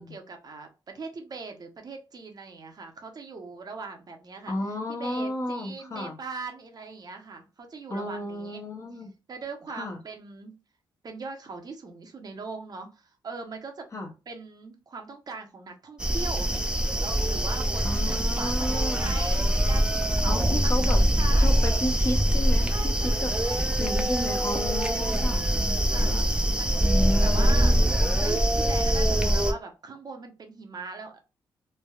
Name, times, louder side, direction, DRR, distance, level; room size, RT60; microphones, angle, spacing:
voice 1, 0.0-4.5 5.0-8.6 9.3-10.5 11.0-13.9 14.3-16.5 17.0-21.5 22.6-23.8 24.9-25.4 25.9-26.9 27.2-31.1, right 4 dB, 50° right, 0.7 m, -40 dB
voice 2, 4.5-6.2 7.9-9.1 9.7-10.0 13.9-14.1 17.8-19.1 20.3-21.0 21.4-22.9 23.2-23.3 23.8-26.3 26.8-27.8, left 1 dB, 35° left, 0.7 m, -32 dB
sound 1, 16.0-29.5, equal, 10° right, 0.5 m, -23 dB
3.3 x 2.1 x 2.3 m
cardioid pair, 85°, 9 cm